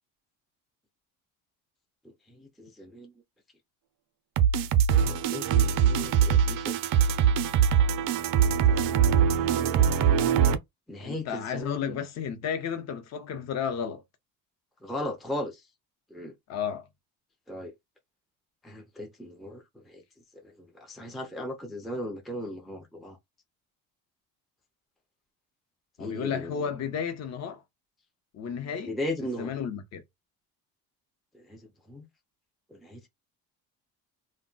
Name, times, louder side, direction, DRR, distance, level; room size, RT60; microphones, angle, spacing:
voice 1, 2.0-3.1 5.0-6.9 8.4-9.9 10.9-12.0 14.8-15.7 16.1-16.3 17.5-17.7 18.6-20.0 20.3-23.2 26.0-26.7 28.9-29.5 31.3-32.1 32.7-33.1, left 1 dB, ahead, 0.4 m, -38 dB
sound 1, 4.4-10.6, right 8 dB, 70° right, 0.5 m, -22 dB
voice 2, 11.0-14.0 16.5-16.9 26.0-27.6 28.3-28.9 29.4-30.0, left 7 dB, 50° left, 0.8 m, -33 dB
2.2 x 2.2 x 3.8 m
cardioid pair, 125°, 35 cm